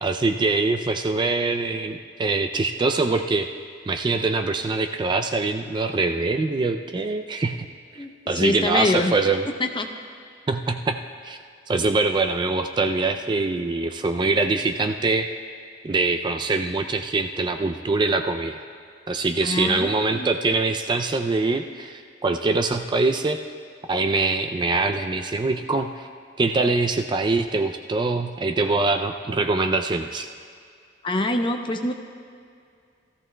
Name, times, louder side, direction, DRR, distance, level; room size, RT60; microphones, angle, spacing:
voice 1, 0.0-3.5 3.9-7.7 8.3-9.4 10.5-11.0 11.2-11.4 11.7-15.3 15.8-18.6 19.1-23.4 23.9-26.1 26.4-30.3, right 3 dB, 25° right, 6 dB, 0.3 m, -23 dB
voice 2, 8.0-9.1 9.6-9.9 19.4-20.3 31.0-31.9, left 1 dB, 25° left, 4 dB, 0.7 m, -25 dB
16.5 x 14.0 x 2.2 m, 2.3 s
head